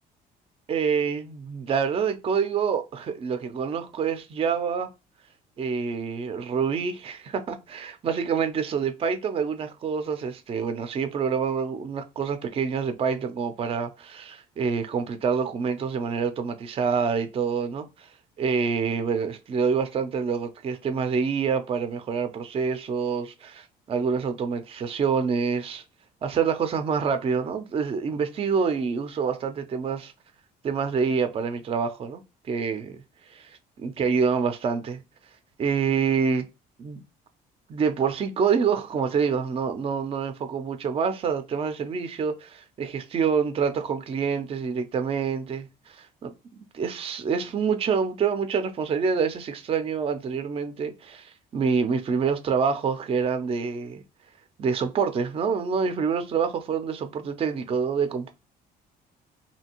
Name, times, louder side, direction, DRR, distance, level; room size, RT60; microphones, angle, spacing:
voice 1, 0.7-4.9 5.6-18.1 18.4-25.8 26.2-30.1 30.6-33.0 33.3-35.0 35.6-36.4 36.8-37.0 37.7-46.3 46.7-54.0 54.6-58.3, right 6 dB, 35° right, 0.4 m, -27 dB
2.7 x 2.6 x 2.9 m
cardioid pair, 110°, 17 cm